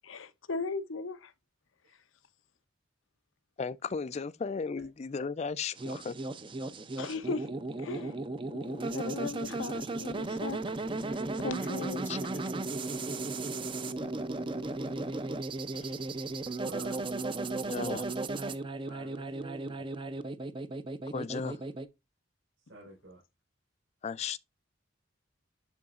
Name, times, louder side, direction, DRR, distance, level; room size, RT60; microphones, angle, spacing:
voice 1, 0.1-1.3 7.0-7.5 7.8-8.1 8.5-10.6 11.1-12.0, left 3 dB, 80° left, 0.7 m, -37 dB
voice 2, 3.6-6.2 12.1-12.2 15.7-16.0 17.7-18.1 21.1-21.6 24.0-24.4, left 5 dB, 35° left, 0.3 m, -35 dB
sound 1, 5.8-21.9, right 2 dB, 25° right, 0.5 m, -35 dB
voice 3, 16.4-17.0 18.9-19.8 22.7-23.2, right 2 dB, 75° right, 4.2 m, -48 dB
11.0 x 3.8 x 2.4 m
head